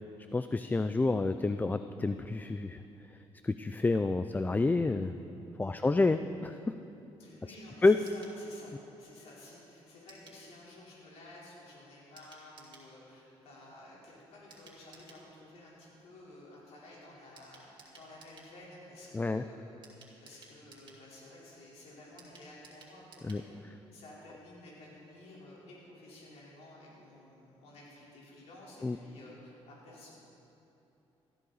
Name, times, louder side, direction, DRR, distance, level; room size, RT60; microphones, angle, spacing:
voice 1, 0.3-2.8 3.4-5.1 5.6-6.8 7.8-8.0 19.1-19.4 23.2-23.4 28.8-29.0, left 3 dB, 15° left, 10 dB, 0.4 m, -28 dB
voice 2, 7.2-8.7 9.0-20.0 20.2-23.6 23.9-30.1, left 1 dB, 75° left, -6 dB, 3.8 m, -53 dB
sound 1, 8.0-8.4 10.1-10.4 12.2-12.9 14.5-15.2 17.4-18.5 19.8-21.0 22.2-23.5 23.8-23.9 24.1-24.2, right 3 dB, 45° right, 3.0 m, -56 dB
17.5 x 14.0 x 4.0 m, 2.9 s
cardioid pair, 85°, 11 cm